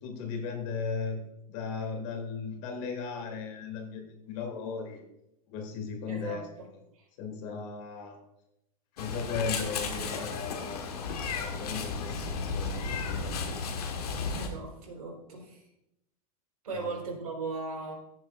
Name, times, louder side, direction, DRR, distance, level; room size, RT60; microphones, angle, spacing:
voice 1, 0.0-1.2 1.5-5.0 5.5-6.4 7.2-8.2 9.0-10.8 11.4-13.5 16.7-16.9, left 5 dB, 55° left, 3 dB, 2.5 m, -36 dB
voice 2, 6.1-6.4 6.9-7.1 14.3-15.7 16.6-17.9, right 3 dB, 90° right, -1 dB, 3.8 m, -38 dB
Meow, 9.0-14.5, left 4 dB, 85° left, 1.5 m, -34 dB
14.5 x 7.3 x 2.5 m, 0.86 s
hypercardioid pair, 115°, 19 cm